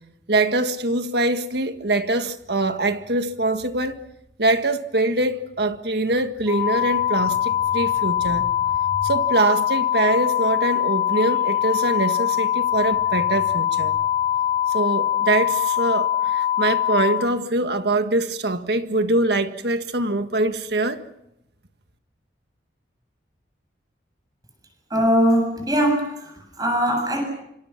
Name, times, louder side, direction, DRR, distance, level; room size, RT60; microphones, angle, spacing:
voice 1, 0.3-4.0 4.4-8.6 9.0-13.9 14.7-21.0, right 2 dB, 60° right, 1.7 m, -23 dB
sound 1, 6.5-17.1, left 10 dB, 5° left, 4.8 m, -22 dB
voice 2, 24.9-27.2, equal, 20° right, 7.2 m, -21 dB
27.0 x 25.5 x 5.9 m
head